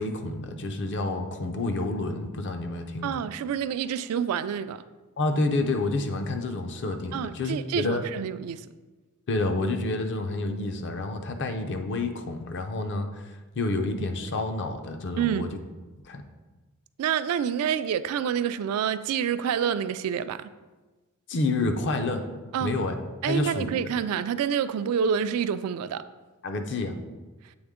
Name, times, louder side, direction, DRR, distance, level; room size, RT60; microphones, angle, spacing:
voice 1, 0.0-3.2 5.2-8.0 9.3-15.5 16.1-16.2 21.3-22.3 22.6-23.0 23.3-23.7 26.4-27.0, left 2 dB, 55° left, 6 dB, 0.5 m, -29 dB
voice 2, 3.0-4.8 7.1-8.7 15.2-15.6 17.0-20.4 22.5-22.7 23.2-26.0, right 8 dB, 75° right, 15 dB, 0.3 m, -27 dB
7.9 x 3.4 x 3.6 m, 1.2 s
head